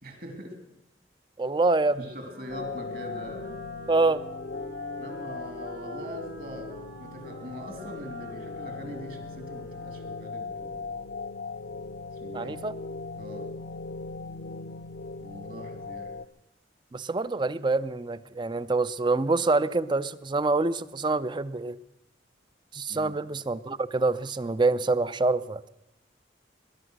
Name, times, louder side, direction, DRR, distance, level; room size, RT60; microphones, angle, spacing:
voice 1, 0.0-0.6 1.9-3.5 5.0-6.7 7.0-10.9 12.2-12.6 13.1-13.5 15.2-16.1 22.9-23.2, left 1 dB, 50° right, 6 dB, 2.9 m, -41 dB
voice 2, 1.4-2.0 3.9-4.2 12.3-12.7 16.9-21.8 22.7-25.7, right 3 dB, 25° right, 16 dB, 0.5 m, -26 dB
Wind instrument woodwind instrument, 1.7-10.4, right 2 dB, 90° right, 4.2 m, -48 dB
sound 1, 2.5-16.3, left 3 dB, 60° left, 0.6 m, -39 dB
20.0 x 11.0 x 6.3 m, 0.90 s
head